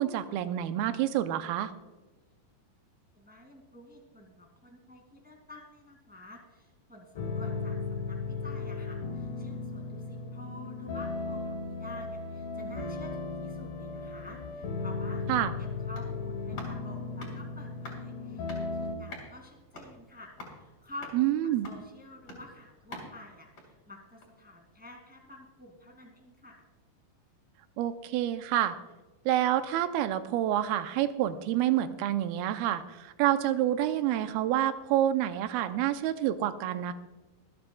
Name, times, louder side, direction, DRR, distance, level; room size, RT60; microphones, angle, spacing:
voice 1, 0.0-1.7 15.3-15.5 21.1-21.7 27.8-28.8 29.3-36.9, right 12 dB, 90° right, 10 dB, 2.5 m, -28 dB
voice 2, 3.1-21.3 21.6-26.6, left 1 dB, 5° right, 1 dB, 1.0 m, -50 dB
sound 1, 7.1-19.0, left 3 dB, 65° left, 2.4 m, -36 dB
sound 2, 15.3-24.5 24.8-24.9, left 2 dB, 40° left, 4.6 m, -49 dB
26.0 x 9.5 x 2.3 m, 1.2 s
omnidirectional pair, 4.3 m